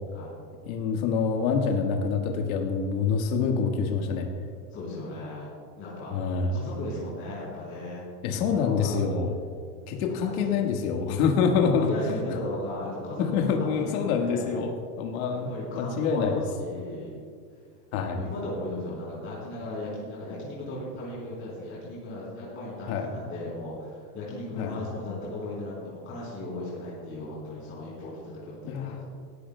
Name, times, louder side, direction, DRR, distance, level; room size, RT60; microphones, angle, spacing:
voice 1, 0.6-4.3 6.1-6.6 8.2-9.3 9.9-11.9 13.2-16.4 17.9-18.2 22.9-23.1 24.6-24.8 28.6-29.0, left 5 dB, 55° left, 2 dB, 1.6 m, -26 dB
voice 2, 4.7-6.2 6.5-9.0 10.2-11.1 11.8-14.6 15.3-17.2 18.1-29.0, left 1 dB, 25° left, -7 dB, 3.5 m, -37 dB
18.0 x 14.0 x 2.2 m, 2.1 s
supercardioid pair, 150°, 48 cm